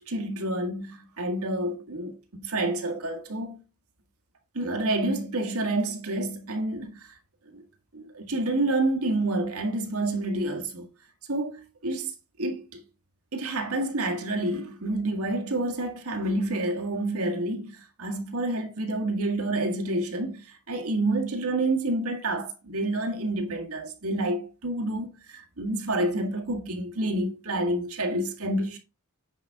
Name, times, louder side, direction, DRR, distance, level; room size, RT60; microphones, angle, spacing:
voice 1, 0.1-3.6 4.5-7.1 7.5-7.6 7.9-10.9 11.3-12.1 12.4-12.8 13.3-28.8, right 1 dB, 85° right, 1.8 m, -28 dB
9.2 x 5.2 x 3.6 m
head